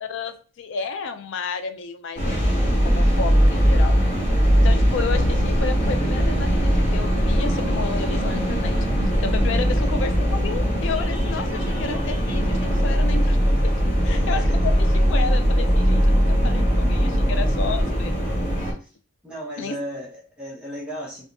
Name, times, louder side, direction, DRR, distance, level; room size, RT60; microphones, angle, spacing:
voice 1, 0.0-4.1 4.6-8.8 9.2-18.2 18.6-18.7 19.6-19.8, left 5 dB, 60° left, 9 dB, 0.3 m, -32 dB
sound 1, 2.2-18.7, equal, 30° left, 0.9 m, -20 dB
voice 2, 9.6-10.1 14.0-14.5 18.8-18.9 19.2-21.2, equal, 5° right, -5 dB, 0.7 m, -36 dB
3.2 x 2.0 x 2.6 m, 0.37 s
head